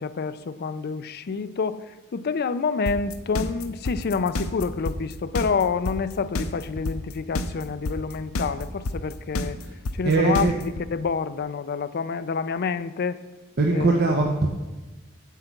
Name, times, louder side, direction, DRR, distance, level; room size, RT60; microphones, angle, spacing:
voice 1, 0.0-1.8 2.1-9.6 9.9-13.2 13.7-14.2, left 5 dB, 50° left, 13 dB, 0.4 m, -28 dB
sound 1, 2.9-10.8, left 2 dB, 80° left, 0.7 m, -28 dB
voice 2, 10.0-10.5 13.6-14.5, right 3 dB, 50° right, 0 dB, 0.8 m, -21 dB
8.2 x 7.7 x 5.8 m, 1.1 s
head